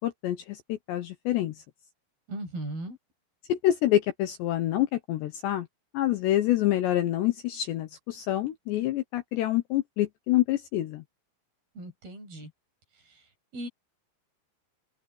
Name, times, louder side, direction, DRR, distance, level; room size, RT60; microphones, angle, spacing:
voice 1, 0.0-1.6 3.5-5.7 5.9-11.0, left 13 dB, 70° left, 2.9 m, -27 dB
voice 2, 2.3-3.0 11.8-12.5 13.1-13.2 13.5-13.7, right 1 dB, 45° right, 9.6 m, -37 dB
open air
omnidirectional pair, 5.9 m